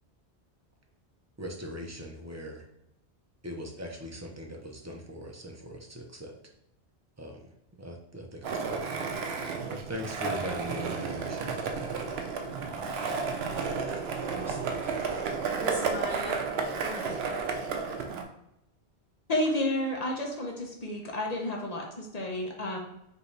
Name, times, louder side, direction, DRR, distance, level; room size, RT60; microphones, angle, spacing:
voice 1, 1.4-2.7 3.4-6.4 7.2-7.5 7.8-9.1 9.7-11.6, equal, 25° right, 1 dB, 0.3 m, -40 dB
Skateboard, 8.4-18.2, right 5 dB, 70° right, 0.8 m, -32 dB
voice 2, 13.9-15.1 15.6-16.5 16.8-17.3, right 1 dB, ahead, -6 dB, 1.3 m, -40 dB
voice 3, 19.3-22.8, left 1 dB, 40° left, 0 dB, 0.7 m, -31 dB
5.2 x 2.6 x 3.2 m, 0.83 s
omnidirectional pair, 1.1 m